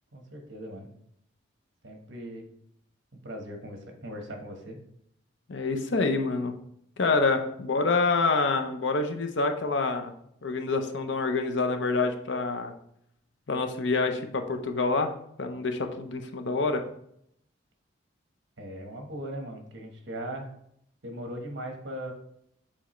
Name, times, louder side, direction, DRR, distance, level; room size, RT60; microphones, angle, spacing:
voice 1, 0.1-0.9 1.8-2.5 3.1-4.8 18.6-20.5 21.0-22.1, equal, 60° right, 3 dB, 1.2 m, -39 dB
voice 2, 5.5-6.6 7.0-10.1 10.4-12.7 13.5-16.8, left 3 dB, 65° left, 5 dB, 0.7 m, -27 dB
7.1 x 4.3 x 3.1 m, 0.72 s
head